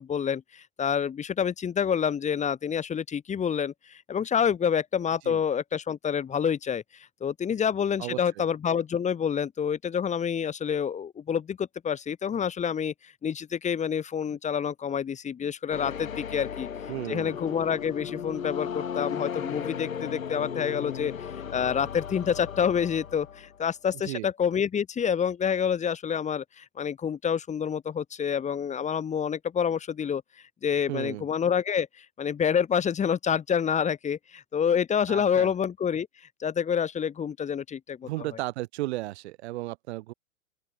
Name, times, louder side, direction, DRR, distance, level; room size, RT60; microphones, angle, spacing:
voice 1, 0.0-16.7 17.1-21.1 21.5-30.2 30.6-36.1 36.4-38.1, left 7 dB, 15° left, 2.7 m, -28 dB
sound 1, 15.7-23.6, left 8 dB, 70° left, 7.9 m, -36 dB
voice 2, 16.9-17.3 24.1-24.3 30.9-31.3 35.1-35.5 38.0-40.1, right 18 dB, 50° right, 4.6 m, -34 dB
open air
figure-of-eight pair, 110°, 41 cm